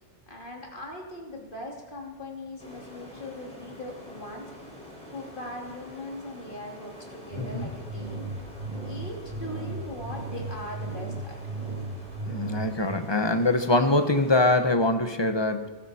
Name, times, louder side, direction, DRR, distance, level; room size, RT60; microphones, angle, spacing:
voice 1, 0.3-4.5 5.1-8.3 8.8-11.4, left 1 dB, 45° left, -1 dB, 2.9 m, -40 dB
sound 1, 2.6-14.6, left 1 dB, 5° left, 4.5 m, -47 dB
sound 2, 7.3-13.0, right 3 dB, 35° right, 2.0 m, -36 dB
voice 2, 7.4-7.7 12.3-15.7, left 2 dB, 25° left, 7 dB, 0.9 m, -23 dB
21.0 x 12.5 x 4.3 m, 1.2 s
omnidirectional pair, 1.2 m